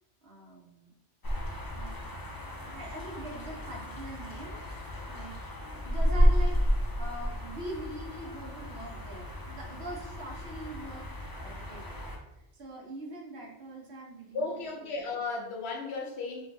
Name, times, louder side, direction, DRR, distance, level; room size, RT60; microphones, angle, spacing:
voice 1, 0.2-1.0 1.7-2.1 2.6-4.6 5.0-5.4 5.7-6.6 7.0-11.1 11.3-12.0 12.4-14.9, right 1 dB, 65° right, -2 dB, 1.2 m, -43 dB
sound 1, 1.2-12.2, equal, 35° left, 0.4 m, -31 dB
voice 2, 14.3-16.5, left 3 dB, 65° left, 1 dB, 0.9 m, -34 dB
4.7 x 2.8 x 2.6 m, 0.90 s
omnidirectional pair, 1.2 m